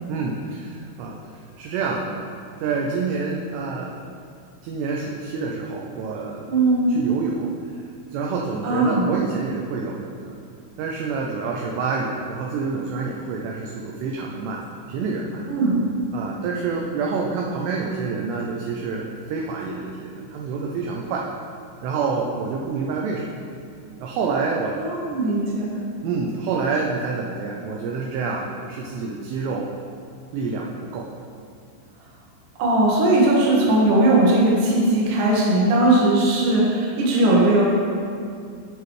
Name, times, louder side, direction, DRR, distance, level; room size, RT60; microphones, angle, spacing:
voice 1, 0.1-1.2 1.6-2.3 2.6-3.9 4.6-6.5 6.9-7.5 8.1-10.4 10.8-14.6 14.9-15.5 16.1-21.3 21.8-23.4 24.0-24.8 26.0-29.7 30.3-31.1, right 4 dB, 80° right, -1 dB, 2.5 m, -27 dB
voice 2, 6.5-6.9 8.6-9.1 15.5-15.8 24.8-25.8 32.6-37.6, right 2 dB, 60° right, -4 dB, 2.2 m, -19 dB
14.5 x 4.8 x 3.2 m, 2.3 s
omnidirectional pair, 5.5 m